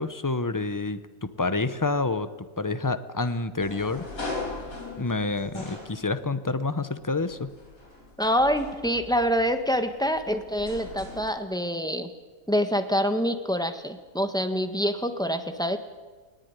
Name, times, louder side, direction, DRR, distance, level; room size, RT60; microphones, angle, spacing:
voice 1, 0.0-2.3 2.6-4.1 5.0-7.5, left 3 dB, 20° left, 12 dB, 0.6 m, -28 dB
sound 1, 3.6-6.5 7.1-11.3, left 3 dB, 85° left, 5.0 m, -40 dB
voice 2, 8.2-12.1 12.5-15.8, equal, 5° left, 8 dB, 1.3 m, -26 dB
19.5 x 19.0 x 9.7 m, 1.4 s
omnidirectional pair, 1.4 m